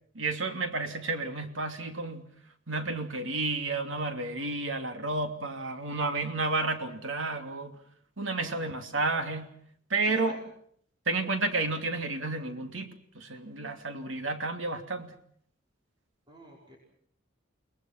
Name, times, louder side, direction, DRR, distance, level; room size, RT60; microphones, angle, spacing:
voice 1, 0.1-2.3 2.7-7.8 8.2-9.5 9.9-10.5 11.1-15.2, right 3 dB, 75° right, 6 dB, 2.9 m, -31 dB
voice 2, 8.3-9.0 10.0-10.4 16.3-16.8, right 1 dB, 25° right, -1 dB, 5.0 m, -49 dB
30.0 x 21.0 x 6.0 m, 0.63 s
head